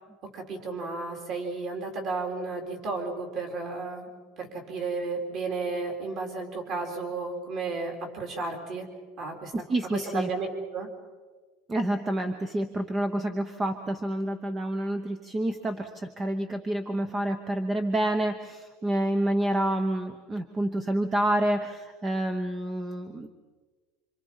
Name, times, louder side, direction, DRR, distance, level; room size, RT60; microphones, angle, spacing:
voice 1, 0.3-4.1 4.4-8.9 9.2-9.5 9.9-10.5 10.7-10.9, right 3 dB, 40° right, 3 dB, 4.2 m, -33 dB
voice 2, 9.5-10.3 11.7-23.3, right 1 dB, 15° right, 8 dB, 0.9 m, -28 dB
27.0 x 26.0 x 5.6 m, 1.3 s
cardioid pair, 175°, 0 cm